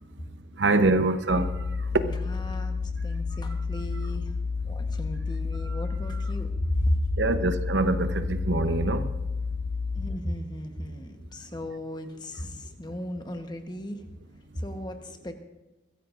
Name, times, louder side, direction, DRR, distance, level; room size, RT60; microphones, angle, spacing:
voice 1, 0.6-2.1 3.3-3.4 5.6-5.8 7.2-9.1, right 2 dB, 70° right, 0.8 m, -25 dB
sound 1, 1.3-10.2, left 4 dB, 60° left, 0.5 m, -31 dB
voice 2, 2.0-2.8 3.0-4.3 4.6-7.0 9.9-14.0 14.5-15.3, equal, 20° left, 1.1 m, -34 dB
22.5 x 15.0 x 2.5 m
head